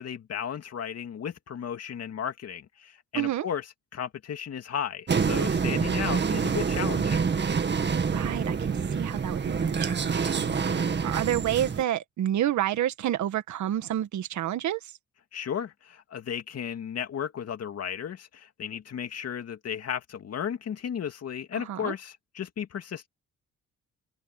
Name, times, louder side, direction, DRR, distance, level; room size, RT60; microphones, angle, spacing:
voice 1, 0.0-3.7 3.9-7.2 10.4-10.8 15.3-23.1, left 8 dB, 55° left, 2.4 m, -34 dB
voice 2, 3.1-3.5 8.1-14.9 21.5-21.9, right 12 dB, 70° right, 1.6 m, -29 dB
sound 1, 5.1-11.8, right 6 dB, 35° right, 1.9 m, -27 dB
cardioid pair, 90°, 30 cm